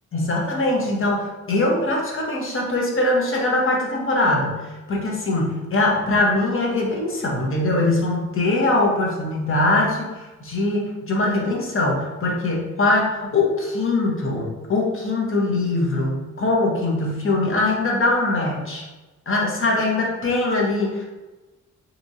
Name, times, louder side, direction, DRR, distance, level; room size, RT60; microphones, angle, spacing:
voice 1, 0.1-18.8 19.3-21.0, left 2 dB, 40° left, -2 dB, 0.9 m, -22 dB
2.9 x 2.5 x 2.6 m, 1.1 s
cardioid pair, 70°, 31 cm